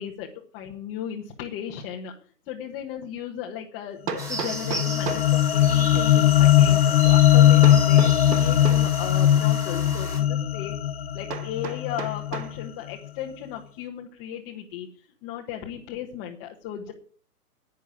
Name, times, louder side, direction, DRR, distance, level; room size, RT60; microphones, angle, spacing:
voice 1, 0.0-2.1 2.5-10.8 11.1-14.9 15.2-16.9, left 10 dB, 20° left, -1 dB, 1.3 m, -36 dB
Hammer, 2.5-2.6 4.1-5.4 7.6-8.9 11.3-12.6, right 6 dB, 85° right, 2.0 m, -34 dB
sound 1, 4.2-12.7, left 12 dB, 40° left, 0.7 m, -19 dB
sound 2, 4.2-10.2, right 2 dB, 5° right, 1.7 m, -37 dB
11.0 x 9.4 x 8.4 m, 0.43 s
hypercardioid pair, 155°, 47 cm